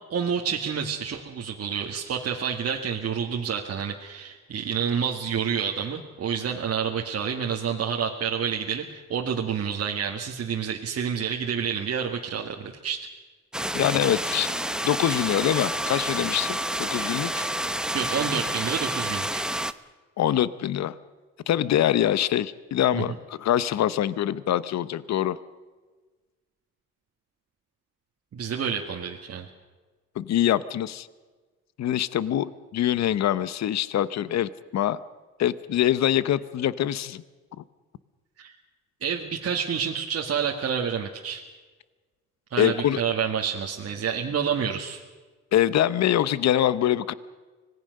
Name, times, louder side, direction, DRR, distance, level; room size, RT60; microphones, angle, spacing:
voice 1, 0.1-13.1 17.9-19.5 22.9-23.1 28.3-29.5 38.4-38.5 39.0-41.4 42.5-45.0, right 7 dB, 50° right, 0 dB, 2.0 m, -29 dB
sound 1, 13.5-19.7, right 1 dB, ahead, 0.9 m, -29 dB
voice 2, 13.7-14.6 14.8-17.5 20.2-21.0 21.5-25.4 30.2-31.1 31.8-35.0 35.4-37.2 42.6-43.0 45.5-47.1, left 11 dB, 60° left, 17 dB, 0.9 m, -24 dB
25.5 x 18.5 x 6.6 m, 1.3 s
cardioid pair, 90°, 30 cm